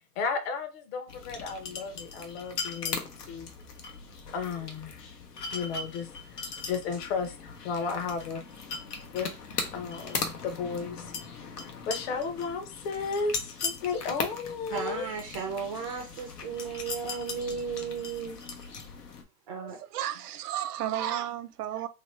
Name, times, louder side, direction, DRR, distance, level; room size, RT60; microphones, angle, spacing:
voice 1, 0.2-3.5 4.3-5.1 5.5-8.4 9.1-11.1 11.4-15.1, left 5 dB, 40° left, 0.8 m, -34 dB
sound 1, 1.1-19.2, left 5 dB, 90° left, 1.1 m, -39 dB
voice 2, 14.7-18.4 19.5-19.8 20.8-20.9, right 6 dB, 25° right, 0.4 m, -35 dB
voice 3, 19.9-21.9, right 11 dB, 75° right, 0.7 m, -32 dB
3.1 x 2.9 x 3.2 m
hypercardioid pair, 130°, 46 cm